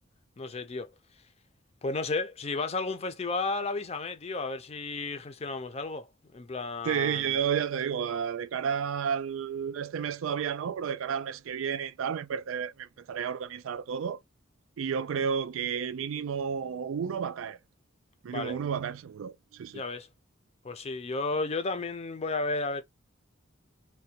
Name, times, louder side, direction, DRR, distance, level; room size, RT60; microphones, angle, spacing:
voice 1, 0.4-0.9 1.8-6.1 6.3-7.4 18.3-18.6 19.7-20.1 20.6-22.8, left 3 dB, 30° left, 0.5 m, -33 dB
voice 2, 6.8-14.2 14.8-17.6 18.2-19.8, right 7 dB, 85° right, 0.4 m, -31 dB
3.3 x 2.2 x 2.8 m
head